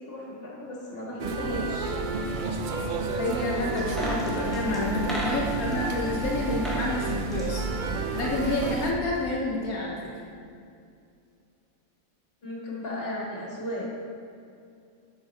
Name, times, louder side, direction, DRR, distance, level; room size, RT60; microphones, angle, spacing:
voice 1, 0.0-2.0 12.4-13.9, left 1 dB, 45° left, -4 dB, 1.9 m, -35 dB
sound 1, 1.2-8.9, right 4 dB, 75° right, 0.4 m, -30 dB
voice 2, 3.2-7.6 8.1-10.0, left 2 dB, 80° left, -3 dB, 1.3 m, -29 dB
sound 2, 3.8-5.8 6.4-6.9 7.2-8.5 8.8-8.9, right 1 dB, ahead, 1.3 m, -36 dB
7.2 x 6.0 x 4.1 m, 2.4 s
omnidirectional pair, 1.5 m